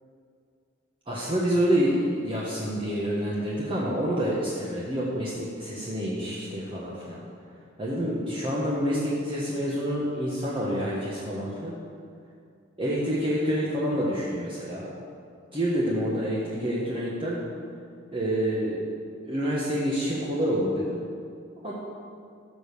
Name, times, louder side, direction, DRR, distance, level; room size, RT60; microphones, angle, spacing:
voice 1, 1.1-7.2 7.8-11.7 12.8-14.9 15.5-17.4 18.1-18.9 19.3-21.0 21.6-21.7, equal, 25° right, -6 dB, 1.4 m, -27 dB
13.5 x 5.3 x 6.8 m, 2.3 s
head